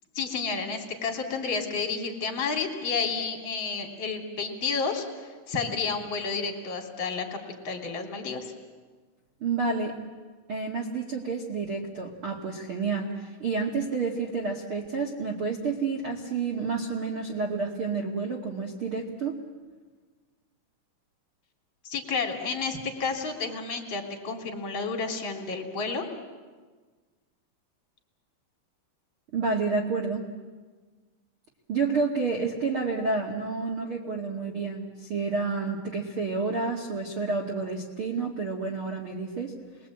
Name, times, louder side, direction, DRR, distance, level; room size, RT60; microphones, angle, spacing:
voice 1, 0.1-7.4 7.6-8.5 21.8-26.0, left 4 dB, 30° left, 2 dB, 3.0 m, -31 dB
voice 2, 9.4-10.0 10.5-19.3 29.3-30.3 31.7-39.5, right 4 dB, 60° right, 0 dB, 1.3 m, -29 dB
30.0 x 22.0 x 8.7 m, 1.4 s
omnidirectional pair, 5.8 m